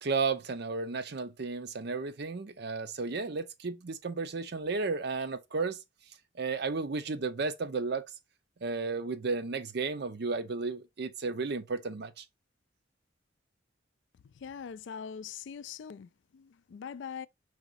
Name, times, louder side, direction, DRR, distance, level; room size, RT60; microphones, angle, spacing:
voice 1, 0.0-5.8 6.4-8.1 8.6-12.2, right 4 dB, 55° right, 0.6 m, -33 dB
voice 2, 14.4-17.3, left 7 dB, 65° left, 0.3 m, -42 dB
4.9 x 4.0 x 2.5 m
head